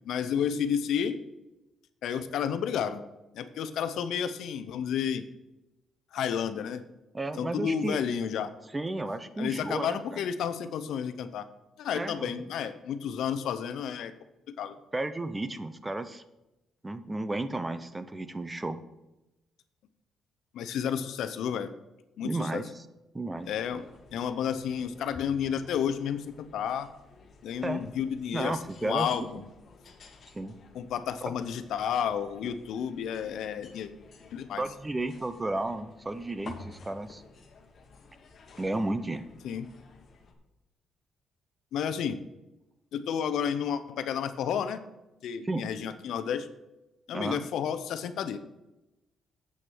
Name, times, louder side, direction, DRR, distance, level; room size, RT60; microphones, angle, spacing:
voice 1, 0.0-1.2 2.0-3.0 3.3-5.2 6.1-6.8 7.4-8.5 9.4-11.5 11.8-14.1 14.6-14.8 20.5-21.7 22.2-22.6 23.5-23.8 24.1-26.9 27.4-29.5 30.7-33.9 34.3-34.6 39.4-39.7 41.7-42.2 42.9-44.8 45.2-46.5 47.1-48.4, left 8 dB, 75° left, 11 dB, 0.6 m, -31 dB
voice 2, 7.1-8.0 8.7-10.2 11.9-12.5 14.9-16.2 16.8-18.8 22.2-22.8 23.1-23.5 27.6-27.8 28.3-29.1 30.3-30.6 31.3-31.4 34.6-37.2 38.6-39.2 45.4-45.6 47.1-47.5, right 2 dB, 20° right, 12 dB, 0.7 m, -33 dB
sound 1, 23.4-40.3, left 4 dB, 50° left, 1.4 m, -53 dB
7.9 x 6.2 x 6.1 m, 0.97 s
cardioid pair, 90°, 0 cm